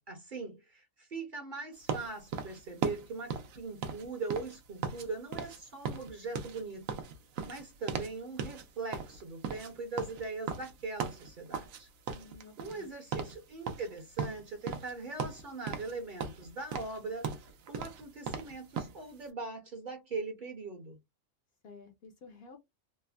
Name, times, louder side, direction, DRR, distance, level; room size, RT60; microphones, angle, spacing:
voice 1, 0.1-6.8 7.5-11.9 12.6-17.4 17.7-21.0, right 3 dB, 50° right, 0.7 m, -41 dB
sound 1, 1.9-5.1 5.3-5.6 5.8-8.1 8.4-8.6 8.9-11.8 12.1-12.9 13.1-13.4 13.7-14.9 15.2-15.9 16.2-19.0, right 6 dB, 90° right, 1.0 m, -37 dB
voice 2, 12.1-12.9 21.6-22.6, left 4 dB, 60° left, 0.7 m, -52 dB
3.2 x 2.0 x 2.2 m
omnidirectional pair, 1.3 m